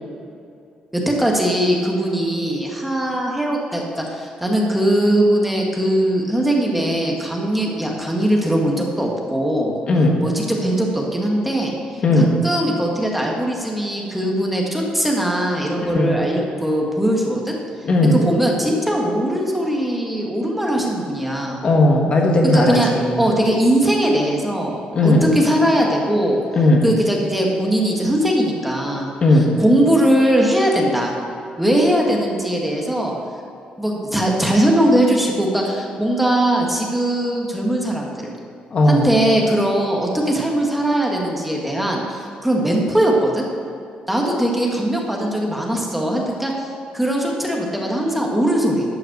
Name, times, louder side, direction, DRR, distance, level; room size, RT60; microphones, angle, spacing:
voice 1, 0.9-9.7 10.2-17.5 18.2-21.6 22.5-22.9 23.2-26.4 26.8-29.1 29.6-31.1 31.6-33.2 33.8-38.3 38.9-43.4 44.1-46.7 46.9-48.8, right 1 dB, 5° right, -1 dB, 1.6 m, -20 dB
voice 2, 9.9-10.2 12.0-12.3 15.8-16.2 17.8-18.2 21.6-23.2 24.9-25.2 26.5-26.8 29.2-29.5 38.7-39.1, left 1 dB, 40° left, 1 dB, 1.5 m, -16 dB
12.0 x 5.7 x 7.9 m, 2.4 s
cardioid pair, 140°, 3 cm